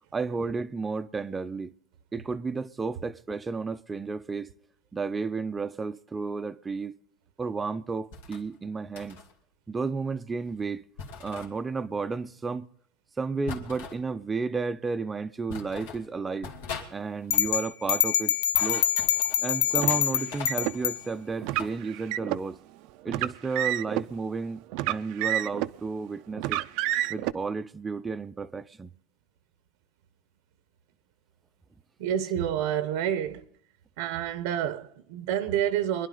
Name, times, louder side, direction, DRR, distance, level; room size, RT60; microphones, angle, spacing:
voice 1, 0.1-1.7 2.1-4.5 4.9-7.0 7.4-9.2 9.7-10.8 11.2-12.7 13.2-16.5 16.9-18.3 18.6-18.8 19.4-22.6 23.0-24.6 24.9-26.6 27.1-28.9, right 4 dB, 15° right, 0.5 m, -32 dB
sound 1, 8.1-8.4 8.9-9.3 11.0-11.5 13.5-14.0 14.9-15.0 15.5-16.0 16.4-16.9 17.2-17.6 18.3-20.0 20.3-21.7, left 6 dB, 85° left, 2.5 m, -41 dB
sound 2, 17.3-21.0, left 11 dB, 70° left, 0.5 m, -25 dB
Car, 19.8-20.8 21.4-22.4 23.1-24.1 24.7-25.8 26.4-27.3, right 14 dB, 60° right, 0.5 m, -29 dB
voice 2, 32.0-33.4 34.0-36.1, right 10 dB, 75° right, 0.9 m, -28 dB
24.0 x 11.0 x 3.9 m
supercardioid pair, 145°, 0 cm